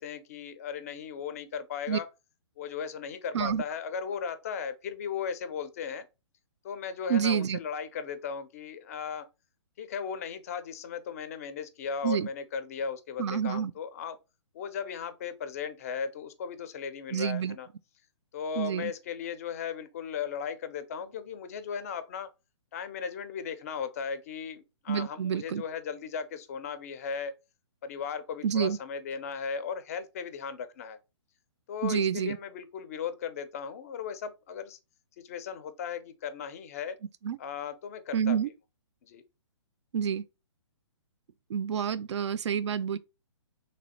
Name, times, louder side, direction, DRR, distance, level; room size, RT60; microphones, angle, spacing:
voice 1, 0.0-2.1 2.6-6.1 6.6-9.3 9.8-14.2 14.5-17.7 18.3-22.3 22.7-27.3 27.8-31.0 31.7-34.8 35.2-37.0 37.4-38.4 39.0-39.2, left 6 dB, 30° left, 0.4 m, -36 dB
voice 2, 7.1-7.6 12.0-12.3 13.2-13.7 17.1-17.6 18.6-18.9 24.9-25.6 28.4-28.8 31.8-32.4 37.2-37.4 38.1-38.5 39.9-40.2 41.5-43.0, right 7 dB, 65° right, 0.4 m, -28 dB
3.1 x 2.5 x 4.0 m
hypercardioid pair, 155°, 16 cm